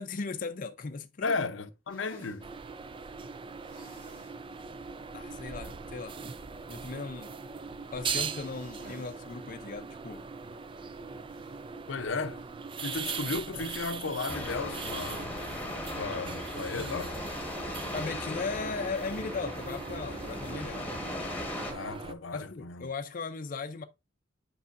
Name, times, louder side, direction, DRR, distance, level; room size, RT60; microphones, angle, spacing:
voice 1, 0.0-1.4 5.1-6.2 6.7-7.3 7.9-10.3 17.9-20.9 22.3-23.8, left 4 dB, 45° left, 0.5 m, -37 dB
voice 2, 1.2-2.5 11.9-12.4 12.8-15.4 16.0-17.2 21.7-22.9, left 4 dB, 85° left, 0.7 m, -34 dB
sound 1, 1.9-2.4 3.6-4.4 4.8-4.9 5.3-5.4 8.0-9.2 9.5-9.6 11.2-11.6, right 1 dB, 50° right, 4.2 m, -54 dB
sound 2, 2.4-22.1, right 5 dB, 25° right, 0.4 m, -40 dB
sound 3, 14.3-21.7, left 1 dB, 10° left, 1.4 m, -38 dB
8.2 x 5.5 x 2.5 m
head